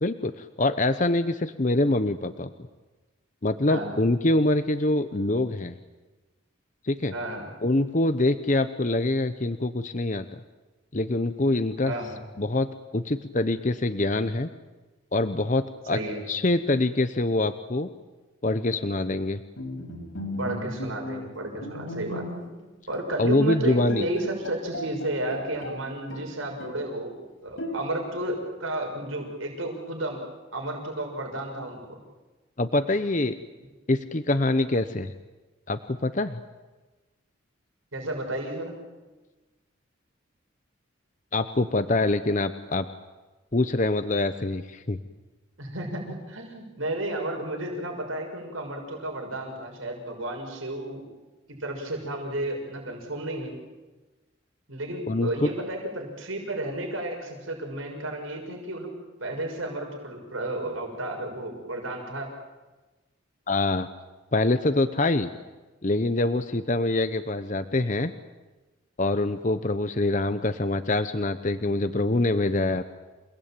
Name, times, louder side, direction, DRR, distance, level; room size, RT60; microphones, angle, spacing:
voice 1, 0.0-2.5 3.4-5.7 6.8-7.1 7.6-10.3 10.9-11.9 12.4-14.5 15.1-16.0 16.3-17.9 18.4-19.4 23.2-24.0 32.6-33.3 33.9-35.1 35.7-36.4 41.3-42.9 43.5-45.0 55.1-55.5 63.5-63.9 64.3-65.3 65.8-68.1 69.0-72.8, left 2 dB, 40° left, 10 dB, 0.9 m, -25 dB
voice 2, 7.1-7.4 11.8-12.2 15.9-16.2 20.4-22.2 22.9-27.1 27.4-30.2 30.5-32.0 37.9-38.7 45.6-51.1 51.6-53.5 54.7-58.9 59.2-62.3, right 1 dB, 90° right, 2 dB, 6.4 m, -32 dB
Bowed string instrument, 19.6-22.6 22.9-23.1 23.6-23.7 23.9-25.8 26.1-26.9 27.6-28.2, left 1 dB, 80° left, 4.9 m, -36 dB
28.5 x 19.5 x 9.0 m, 1.2 s
head